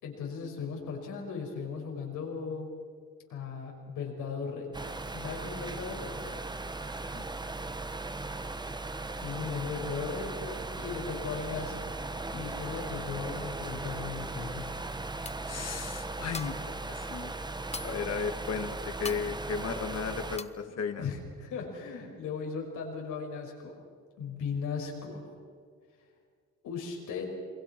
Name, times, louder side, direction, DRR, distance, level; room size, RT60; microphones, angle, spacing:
voice 1, 0.0-2.7 3.3-6.3 9.1-11.9 12.3-14.7 20.7-23.7 24.2-25.3 26.6-27.3, left 5 dB, 85° left, 1 dB, 5.6 m, -37 dB
sound 1, 4.7-20.4, right 2 dB, 15° right, 1.1 m, -38 dB
sound 2, 15.2-15.7 16.1-16.8 17.1-17.2 17.4-18.1 18.5-18.6 19.0-19.3 19.7-20.0 20.4-20.6, left 4 dB, 20° left, 0.9 m, -42 dB
voice 2, 15.5-17.3 17.8-21.1, left 6 dB, 55° left, 6 dB, 2.1 m, -35 dB
28.0 x 22.0 x 6.0 m, 2.1 s
cardioid pair, 90°, 30 cm